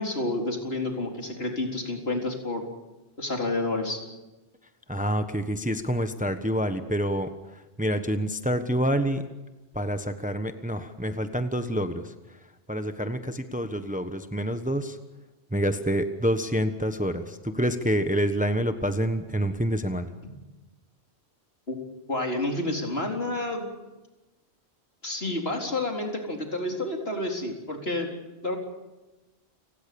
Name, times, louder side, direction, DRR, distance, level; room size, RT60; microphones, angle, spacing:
voice 1, 0.0-2.6 3.2-4.0 21.7-21.8 22.1-23.7 25.0-28.1 28.4-28.6, left 2 dB, 65° left, 2 dB, 4.3 m, -29 dB
voice 2, 4.9-9.2 9.7-12.1 12.7-15.0 15.5-20.1, equal, 10° right, 8 dB, 1.1 m, -27 dB
29.5 x 19.0 x 7.0 m, 1.1 s
omnidirectional pair, 1.1 m